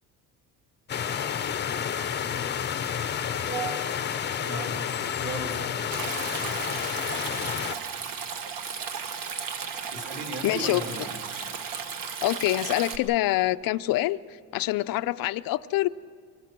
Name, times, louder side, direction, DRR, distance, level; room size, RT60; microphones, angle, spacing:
sound 1, 0.9-7.8, left 8 dB, 30° left, 0.7 m, -30 dB
voice 1, 4.4-4.8 5.2-5.9 9.9-11.1, right 3 dB, 40° right, 3 dB, 2.8 m, -35 dB
Stream, 5.9-13.0, right 6 dB, 60° right, 1.6 m, -35 dB
voice 2, 10.4-10.8 12.2-15.9, left 16 dB, 65° left, 12 dB, 0.5 m, -26 dB
24.0 x 24.0 x 6.0 m, 2.1 s
cardioid pair, 140°, 38 cm